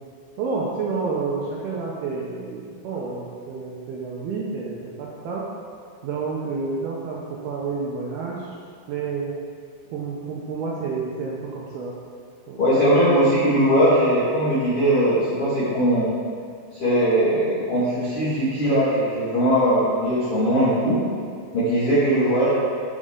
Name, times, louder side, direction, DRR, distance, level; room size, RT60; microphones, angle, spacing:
voice 1, 0.4-5.5 6.0-8.5 8.9-9.4 9.9-12.0 12.5-12.6, right 4 dB, 75° right, -4 dB, 2.4 m, -29 dB
voice 2, 12.6-16.0 16.7-21.0 21.5-22.5, equal, 50° left, -12 dB, 1.7 m, -20 dB
13.5 x 5.3 x 3.7 m, 2.2 s
omnidirectional pair, 5.2 m